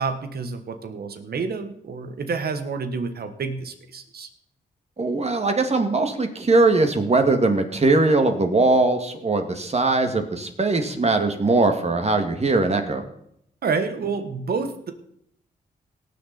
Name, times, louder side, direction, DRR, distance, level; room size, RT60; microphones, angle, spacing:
voice 1, 0.0-4.3 13.6-14.9, right 5 dB, 70° right, 8 dB, 1.5 m, -28 dB
voice 2, 5.0-13.0, right 3 dB, 40° right, 5 dB, 2.1 m, -20 dB
18.0 x 6.9 x 4.3 m, 0.71 s
cardioid pair, 60°, 17 cm